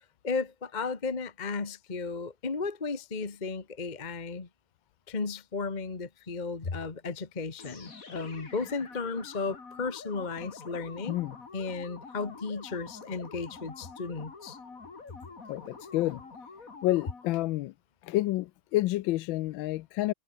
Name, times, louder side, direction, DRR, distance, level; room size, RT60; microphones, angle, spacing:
voice 1, 0.0-4.5 5.1-11.2 11.5-14.6, left 4 dB, 25° left, 1.4 m, -34 dB
sound 1, 7.6-17.4, left 4 dB, 40° left, 3.0 m, -47 dB
voice 2, 15.5-16.2 16.8-17.7 18.0-20.1, left 17 dB, 75° left, 1.3 m, -29 dB
omnidirectional pair, 2.2 m